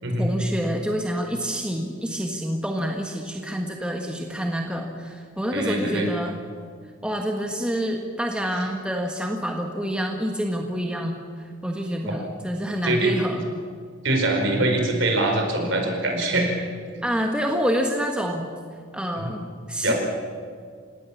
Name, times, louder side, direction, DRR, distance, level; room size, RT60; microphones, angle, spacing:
voice 1, 0.2-6.3 7.0-13.5 17.0-18.5 18.9-19.9, equal, 5° right, 2 dB, 1.5 m, -27 dB
voice 2, 5.5-6.1 12.1-12.2 12.8-13.1 14.0-16.5 19.2-19.3 19.8-19.9, right 2 dB, 55° right, 2 dB, 4.6 m, -23 dB
29.5 x 17.5 x 7.2 m, 2.1 s
head